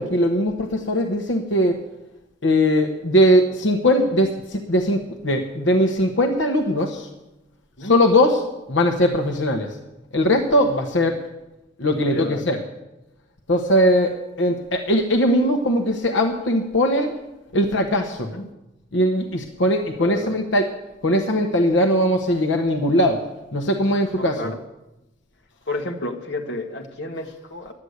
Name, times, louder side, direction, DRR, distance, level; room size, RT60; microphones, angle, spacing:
voice 1, 0.0-1.8 2.4-7.1 7.8-8.4 8.7-9.7 10.1-11.2 11.8-12.6 13.5-17.1 17.5-18.3 18.9-20.7 21.0-23.2 23.5-24.5, equal, 80° left, 4 dB, 1.2 m, -20 dB
voice 2, 12.1-12.5 18.3-18.5 20.0-20.4 24.2-24.6 25.7-27.7, left 2 dB, 65° left, 3 dB, 1.5 m, -31 dB
11.5 x 9.8 x 8.0 m, 0.97 s
head